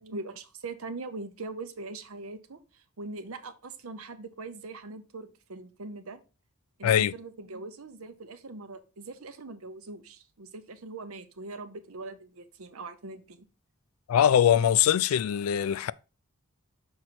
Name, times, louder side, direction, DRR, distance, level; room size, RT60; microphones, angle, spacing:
voice 1, 0.0-6.2 6.8-13.5, right 3 dB, 75° right, 0.8 m, -41 dB
voice 2, 6.8-7.1 14.1-15.9, left 9 dB, 75° left, 0.3 m, -22 dB
6.4 x 4.3 x 4.3 m
head